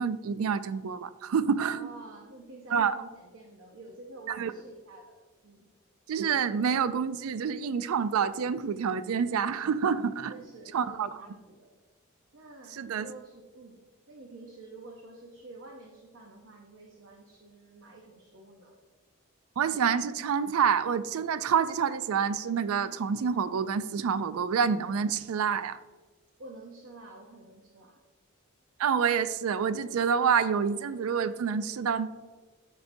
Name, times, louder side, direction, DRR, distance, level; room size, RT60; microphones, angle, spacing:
voice 1, 0.0-1.9 2.7-2.9 4.3-4.5 6.1-10.3 10.7-11.2 12.7-13.1 19.6-25.8 28.8-32.1, right 6 dB, 85° right, 14 dB, 0.4 m, -27 dB
voice 2, 1.6-5.2 5.4-5.7 10.3-11.7 12.3-13.8 14.1-18.8 26.4-28.0, right 2 dB, 65° right, 1 dB, 0.8 m, -49 dB
14.0 x 4.7 x 2.7 m, 1.3 s
head